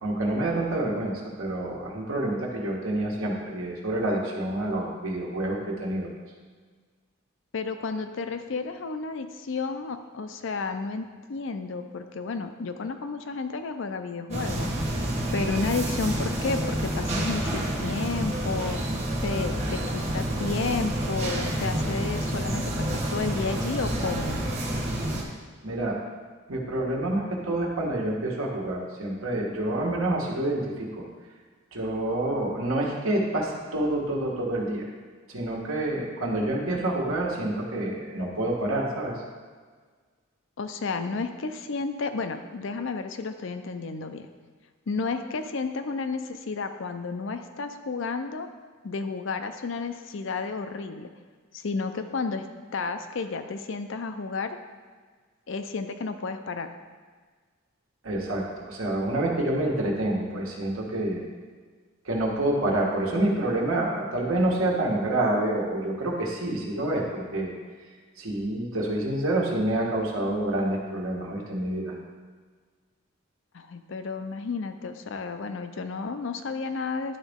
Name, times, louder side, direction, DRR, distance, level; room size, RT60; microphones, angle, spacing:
voice 1, 0.0-6.1 25.6-26.0 26.5-31.0 31.7-34.8 35.3-39.1 58.0-61.2 62.0-67.5 68.2-71.9, right 1 dB, 75° right, -2 dB, 1.4 m, -27 dB
voice 2, 7.5-14.7 15.3-18.8 19.2-24.4 40.6-44.3 44.9-48.5 48.8-51.1 51.5-52.5 52.7-54.6 55.5-56.7 73.5-77.2, left 4 dB, 60° left, 8 dB, 0.5 m, -32 dB
sound 1, 14.3-25.2, right 1 dB, 30° right, 1.1 m, -29 dB
11.0 x 4.0 x 3.6 m, 1.5 s
head